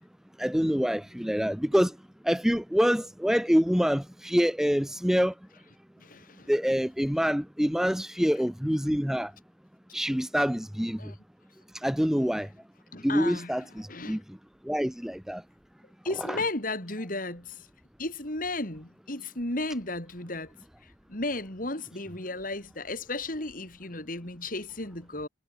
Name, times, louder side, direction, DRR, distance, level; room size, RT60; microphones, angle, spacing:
voice 1, 0.4-1.9 2.2-5.3 6.5-9.3 9.9-11.1 11.8-12.5 13.0-14.2 14.6-15.4 16.2-16.4, equal, 5° right, 0.6 m, -26 dB
voice 2, 6.0-6.5 11.0-11.2 12.9-13.6 13.9-14.2 16.0-17.6 18.0-20.5 20.8-25.3, left 2 dB, 50° left, 6.8 m, -34 dB
head